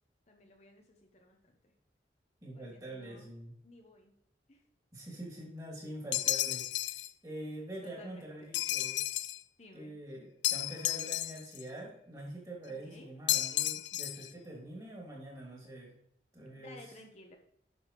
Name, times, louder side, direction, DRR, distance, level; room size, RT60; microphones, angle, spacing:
voice 1, 0.3-1.7 2.5-3.3 3.6-4.1 4.5-4.6 7.8-8.6 9.6-9.9 12.7-13.1 16.5-17.4, left 1 dB, 35° left, 2 dB, 1.0 m, -56 dB
voice 2, 2.4-3.5 4.9-9.0 9.7-15.9 16.3-16.8, right 1 dB, 20° right, -3 dB, 2.9 m, -45 dB
sound 1, 6.1-7.1 8.5-9.4 10.4-11.6 13.3-14.3, left 14 dB, 85° left, 0.5 m, -32 dB
9.9 x 6.4 x 3.1 m, 0.73 s
head